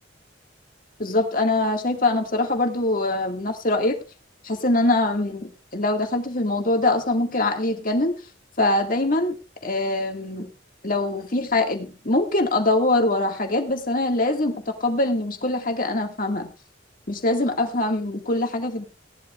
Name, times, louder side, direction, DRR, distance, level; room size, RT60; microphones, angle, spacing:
voice 1, 1.0-4.0 4.4-8.2 8.6-9.4 9.6-10.5 10.8-16.5 17.1-18.8, left 2 dB, 50° left, 4 dB, 2.1 m, -23 dB
17.5 x 11.5 x 2.5 m, 0.30 s
head